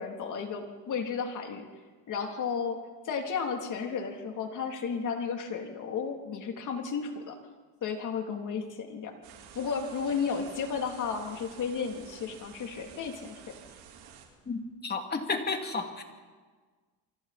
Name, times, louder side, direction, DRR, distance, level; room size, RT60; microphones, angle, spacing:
voice 1, 0.0-1.7 2.1-2.8 3.0-7.4 7.8-9.1 9.5-13.5, left 6 dB, 50° left, 3 dB, 3.2 m, -33 dB
sound 1, 9.2-14.3, right 8 dB, 90° right, 4.0 m, -51 dB
voice 2, 14.5-16.0, left 4 dB, 25° left, 4 dB, 2.8 m, -32 dB
28.5 x 24.5 x 4.3 m, 1.4 s
cardioid pair, 125°, 38 cm